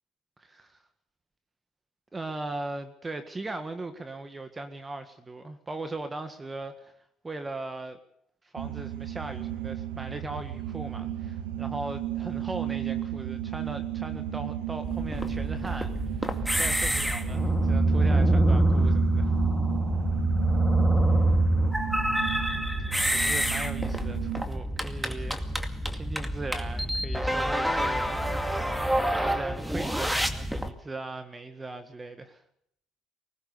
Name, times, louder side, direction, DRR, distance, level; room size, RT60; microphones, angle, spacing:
voice 1, 0.4-0.8 2.1-6.9 7.2-8.0 8.5-19.3 21.0-21.3 23.1-28.2 28.5-32.4, right 2 dB, 20° right, 8 dB, 1.8 m, -39 dB
sound 1, 8.6-24.4, right 12 dB, 80° right, 2.6 m, -34 dB
sound 2, 14.8-30.7, right 1 dB, 5° right, 2.3 m, -26 dB
20.5 x 19.0 x 6.9 m, 0.70 s
hypercardioid pair, 65°, 0 cm